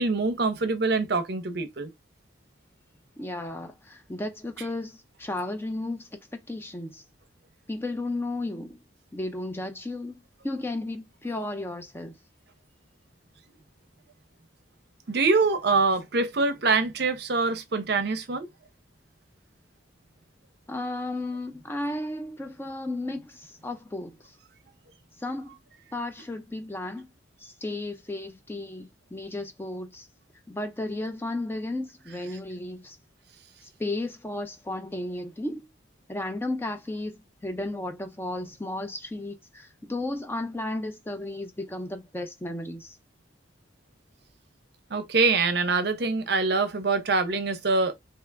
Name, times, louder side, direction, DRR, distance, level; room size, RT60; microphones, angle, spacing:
voice 1, 0.0-1.9 15.1-18.5 44.9-48.0, right 3 dB, 55° right, 0.6 m, -24 dB
voice 2, 3.2-7.0 7.7-8.8 9.1-12.2 20.7-24.4 25.2-25.6 25.9-27.1 27.4-30.1 30.5-33.0 33.8-35.7 36.1-43.0, left 2 dB, 10° left, 0.3 m, -34 dB
2.8 x 2.4 x 3.3 m
head